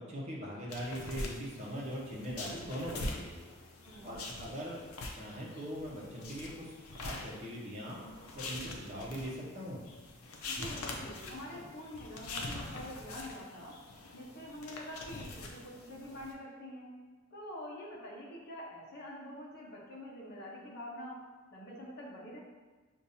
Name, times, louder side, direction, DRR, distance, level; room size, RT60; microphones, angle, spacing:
voice 1, 0.0-3.4 4.0-4.8 5.1-6.7 6.9-8.0 8.3-9.8, equal, 30° right, -4 dB, 1.0 m, -41 dB
sound 1, 0.7-16.3, left 2 dB, 85° left, 0.6 m, -44 dB
voice 2, 3.8-4.3 10.5-13.8 14.1-16.9 17.3-21.2 21.5-22.4, left 1 dB, 50° left, -4 dB, 1.0 m, -46 dB
6.7 x 2.6 x 2.8 m, 1.3 s
head